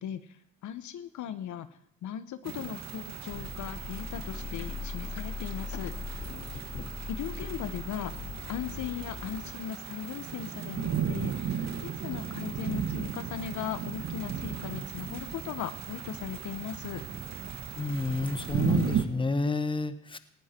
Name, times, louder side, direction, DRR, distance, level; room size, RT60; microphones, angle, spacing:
voice 1, 0.0-1.7 2.0-5.9 7.1-8.1 8.5-17.0, left 9 dB, 75° left, 11 dB, 1.2 m, -38 dB
sound 1, 2.4-19.1, right 7 dB, 65° right, 2.0 m, -35 dB
sound 2, 3.3-9.5, left 5 dB, 50° left, 1.9 m, -40 dB
voice 2, 17.8-20.2, left 3 dB, 15° left, 11 dB, 1.2 m, -30 dB
19.0 x 15.0 x 4.5 m, 0.67 s
cardioid pair, 90°, 30 cm